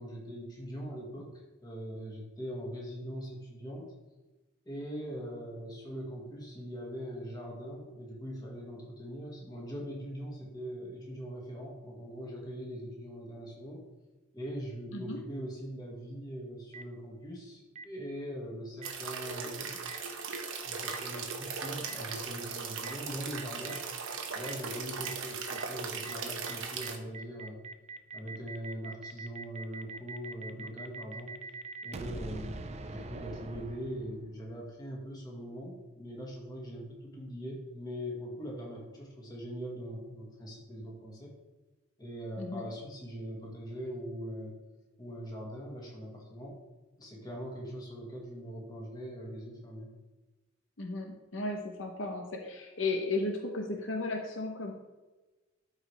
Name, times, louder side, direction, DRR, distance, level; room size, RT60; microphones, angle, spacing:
voice 1, 0.0-3.9 4.7-13.9 14.3-19.8 20.6-23.8 24.3-27.6 28.1-31.3 31.8-41.3 42.0-44.6 45.0-46.6 47.0-49.9, equal, 20° left, -3 dB, 2.0 m, -41 dB
Boom, 16.7-16.8 17.7-17.8 18.8-18.9 19.9-20.0 20.9-21.0 21.9-22.0 22.8-22.9 23.7-23.8 24.4-24.5 25.0-25.1 25.5-25.6 26.0-26.1 26.4-26.5 26.8-34.4, right 3 dB, 30° right, 0.4 m, -43 dB
sound 1, 18.8-27.0, right 5 dB, 80° right, 1.1 m, -38 dB
voice 2, 42.4-42.7 50.8-54.7, left 2 dB, 70° left, 2 dB, 0.9 m, -35 dB
12.0 x 4.9 x 3.4 m, 1.2 s
head